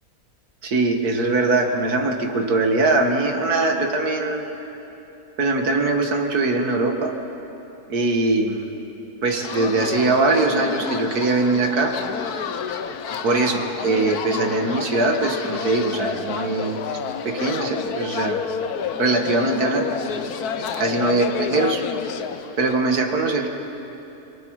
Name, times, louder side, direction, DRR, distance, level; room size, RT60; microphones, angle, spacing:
voice 1, 0.6-4.5 5.4-7.1 7.9-8.7 9.2-12.0 13.2-17.0 17.2-18.4 19.0-19.9 20.8-21.8 22.6-23.5, right 3 dB, 90° right, 3 dB, 2.2 m, -21 dB
sound 1, 9.3-22.9, left 7 dB, 90° left, 1.4 m, -30 dB
28.0 x 24.5 x 4.8 m, 3.0 s
omnidirectional pair, 1.6 m